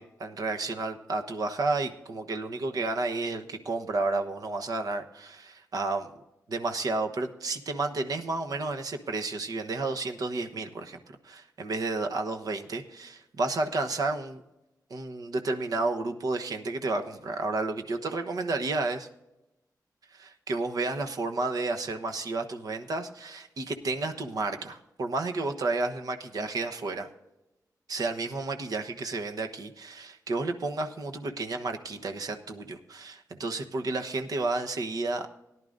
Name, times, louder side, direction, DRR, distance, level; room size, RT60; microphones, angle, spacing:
voice 1, 0.0-6.1 6.5-14.4 14.9-19.1 20.1-27.1 27.9-35.3, right 3 dB, 70° right, 5 dB, 1.1 m, -31 dB
18.0 x 11.0 x 2.6 m, 0.94 s
wide cardioid pair, 105°, 7 cm